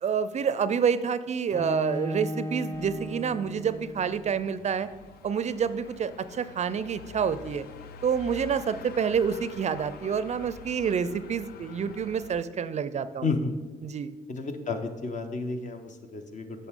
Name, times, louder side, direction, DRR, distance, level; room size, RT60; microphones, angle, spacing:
voice 1, 0.0-4.9 5.2-7.7 8.0-13.3 13.8-14.1, right 7 dB, 45° right, 14 dB, 0.4 m, -28 dB
Bowed string instrument, 1.5-4.5, equal, 15° left, 1.1 m, -36 dB
sound 1, 2.7-12.4, left 6 dB, 65° left, 0.5 m, -47 dB
voice 2, 13.2-13.5 14.3-16.7, left 3 dB, 50° left, 6 dB, 1.0 m, -32 dB
8.1 x 6.7 x 3.7 m, 1.4 s
supercardioid pair, 55°, 17 cm